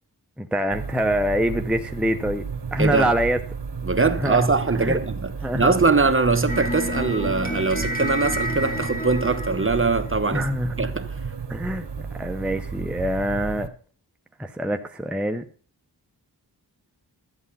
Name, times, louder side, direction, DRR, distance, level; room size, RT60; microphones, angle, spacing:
voice 1, 0.4-3.4 4.2-4.4 4.7-5.0 5.4-5.7 10.3-10.9 11.5-13.7 14.4-15.5, equal, 5° right, 0.7 m, -25 dB
sound 1, 0.7-13.7, right 5 dB, 65° right, 1.3 m, -33 dB
voice 2, 2.8-3.1 3.8-10.4 10.8-11.2, right 3 dB, 30° right, 1.1 m, -22 dB
sound 2, 6.5-10.8, left 1 dB, 20° left, 2.3 m, -30 dB
12.5 x 8.2 x 5.5 m
wide cardioid pair, 65°, 43 cm